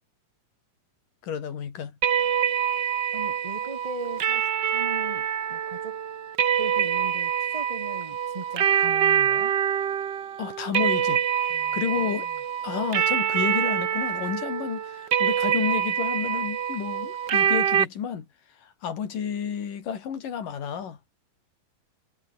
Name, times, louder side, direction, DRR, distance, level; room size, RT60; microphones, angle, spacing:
voice 1, 1.2-2.0 10.4-12.3 12.6-18.3 18.6-21.0, left 7 dB, 70° left, 4.5 m, -31 dB
sound 1, 2.0-17.8, right 8 dB, 60° right, 1.1 m, -25 dB
voice 2, 3.1-6.0 6.6-9.5 11.5-12.3, right 2 dB, 25° right, 0.7 m, -39 dB
omnidirectional pair, 3.9 m